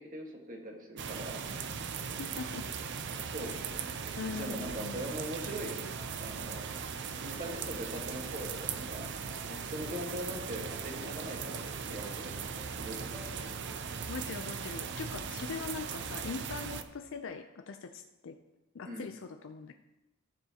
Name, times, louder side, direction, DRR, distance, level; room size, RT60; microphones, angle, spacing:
voice 1, 0.0-1.5 3.3-3.6 4.3-5.9 6.2-6.7 7.1-9.1 9.5-12.4 12.8-13.1 18.8-19.1, equal, 40° right, 1 dB, 1.5 m, -41 dB
sound 1, 1.0-16.8, right 6 dB, 55° right, 0.6 m, -39 dB
voice 2, 2.2-2.6 4.2-5.0 14.0-18.4 18.7-19.7, left 4 dB, 65° left, 6 dB, 0.5 m, -41 dB
sound 2, 3.1-15.3, left 1 dB, 10° right, 0.9 m, -56 dB
14.5 x 7.0 x 2.9 m, 1.0 s
head